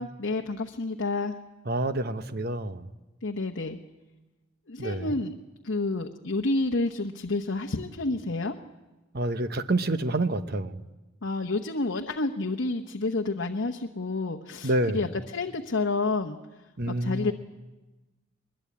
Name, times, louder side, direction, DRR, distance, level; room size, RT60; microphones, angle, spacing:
voice 1, 0.0-1.4 3.2-3.8 4.7-5.3 5.6-8.5 11.2-16.4 16.9-17.3, left 3 dB, 70° left, 3 dB, 1.0 m, -29 dB
voice 2, 1.7-2.9 4.8-5.2 9.1-10.8 14.6-15.0 16.8-17.3, right 2 dB, 55° right, 10 dB, 1.0 m, -28 dB
22.0 x 21.5 x 8.6 m, 1.1 s
head